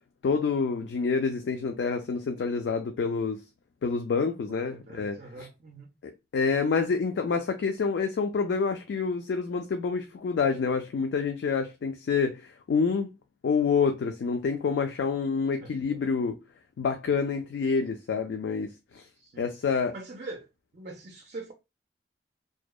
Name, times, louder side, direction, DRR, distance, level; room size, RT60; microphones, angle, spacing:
voice 1, 0.2-3.4 3.8-5.5 6.0-13.1 13.4-16.4 16.8-19.1 19.4-19.9, left 5 dB, 80° left, 0.3 m, -27 dB
voice 2, 4.4-5.9 15.6-16.0 19.1-19.5 19.9-20.5 20.7-21.5, right 2 dB, 45° right, 0.4 m, -43 dB
2.7 x 2.1 x 2.2 m
head